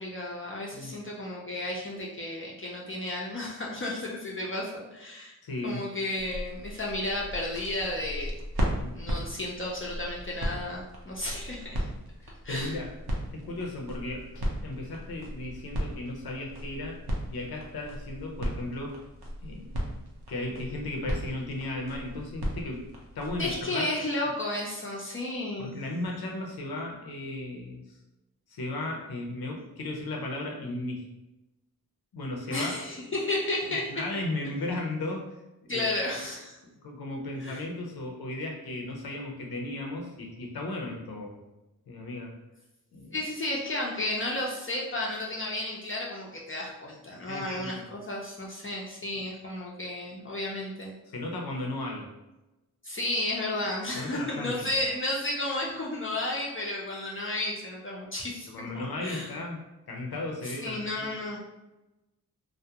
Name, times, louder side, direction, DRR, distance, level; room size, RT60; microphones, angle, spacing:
voice 1, 0.0-5.4 5.6-8.3 8.9-11.9 12.4-12.8 23.4-25.8 32.5-33.9 35.7-36.6 37.4-37.6 43.1-50.9 52.8-58.5 58.7-59.3 60.4-61.4, left 1 dB, 35° left, -3 dB, 0.5 m, -33 dB
voice 2, 5.4-5.8 8.8-8.9 12.2-12.9 13.3-17.0 17.3-19.0 19.4-19.7 20.3-22.8 23.2-23.9 25.6-27.8 28.5-31.1 32.1-32.8 33.6-35.3 35.6-35.9 36.6-41.4 41.9-42.3 42.9-43.2 47.3-47.8 51.1-52.1 53.9-54.7 58.5-61.2, left 2 dB, 80° left, 1 dB, 0.6 m, -35 dB
sound 1, 6.1-23.7, equal, 90° right, 0.7 m, -36 dB
2.3 x 2.1 x 2.7 m, 1.0 s
wide cardioid pair, 55°, 37 cm